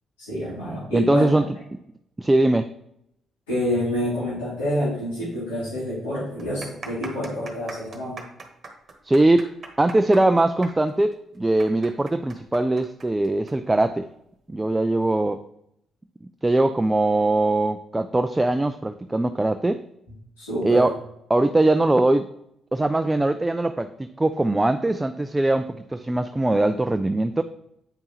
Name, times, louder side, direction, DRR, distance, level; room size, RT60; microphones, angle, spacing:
voice 1, 0.2-1.3 3.5-8.2 20.4-20.9, left 1 dB, 85° left, -10 dB, 2.6 m, -27 dB
voice 2, 0.9-1.5 2.2-2.7 9.0-9.5 9.8-14.1 14.5-15.4 16.4-19.8 20.6-21.0 21.3-22.3 22.7-27.4, right 2 dB, 15° right, 9 dB, 0.4 m, -21 dB
sound 1, 5.2-5.3 5.6-5.7 6.3-13.5 13.8-13.9 14.7-14.9, right 4 dB, 45° right, 1.2 m, -41 dB
8.0 x 5.3 x 3.0 m, 0.77 s
hypercardioid pair, 45°, 0 cm